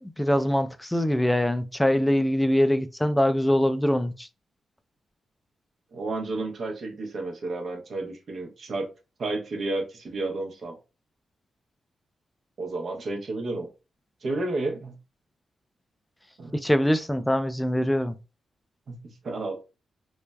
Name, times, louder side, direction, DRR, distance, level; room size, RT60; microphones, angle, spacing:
voice 1, 0.0-4.3 16.5-18.2, equal, 10° left, 0.3 m, -23 dB
voice 2, 5.9-8.9 9.2-10.8 12.6-13.7 14.2-15.0 16.4-16.6 18.9-19.6, right 2 dB, 65° right, 0.7 m, -31 dB
3.2 x 2.1 x 2.2 m
cardioid pair, 60°, 0 cm